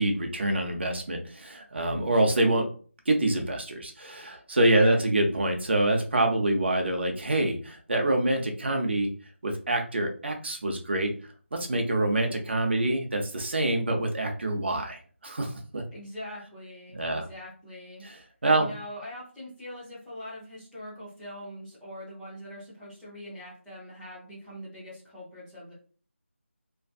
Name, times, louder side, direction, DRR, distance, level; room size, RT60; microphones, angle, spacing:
voice 1, 0.0-2.7 3.1-9.1 9.4-11.1 11.5-15.8 16.9-17.3 18.0-18.2 18.4-18.7, right 1 dB, 55° right, 3 dB, 0.6 m, -26 dB
voice 2, 15.9-18.1 18.6-25.7, left 1 dB, ahead, -12 dB, 0.4 m, -42 dB
2.6 x 2.4 x 2.3 m, 0.41 s
figure-of-eight pair, 170°, 7 cm